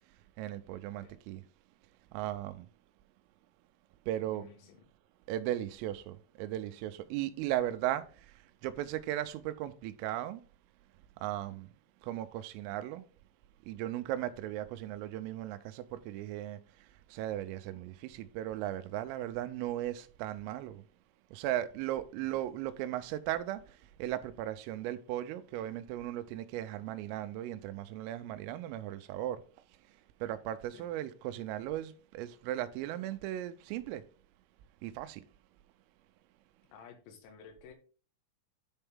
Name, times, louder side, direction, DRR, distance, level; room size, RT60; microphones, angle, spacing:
voice 1, 0.4-1.4 2.1-2.7 4.1-4.5 5.3-10.4 11.2-11.7 12.0-13.1 13.7-16.6 17.1-20.8 21.3-29.4 30.2-34.0 34.8-35.2, right 13 dB, 85° right, 3.2 m, -37 dB
voice 2, 4.3-4.8 22.2-22.4 30.7-30.9 36.7-37.7, left 7 dB, 90° left, 4.3 m, -54 dB
9.9 x 4.4 x 3.5 m
omnidirectional pair, 5.9 m